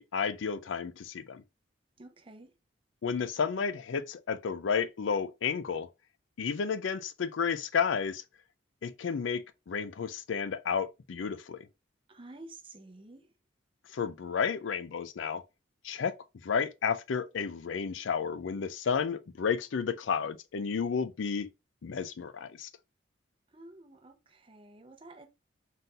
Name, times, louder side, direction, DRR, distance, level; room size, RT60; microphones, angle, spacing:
voice 1, 0.0-1.4 3.0-5.9 6.4-8.2 8.8-11.7 13.9-15.4 15.8-16.1 16.4-21.5 21.8-22.7, left 6 dB, 75° left, 0.4 m, -32 dB
voice 2, 2.0-2.5 12.1-13.3 23.5-25.3, right 2 dB, 25° right, 0.7 m, -51 dB
4.1 x 2.6 x 3.7 m
head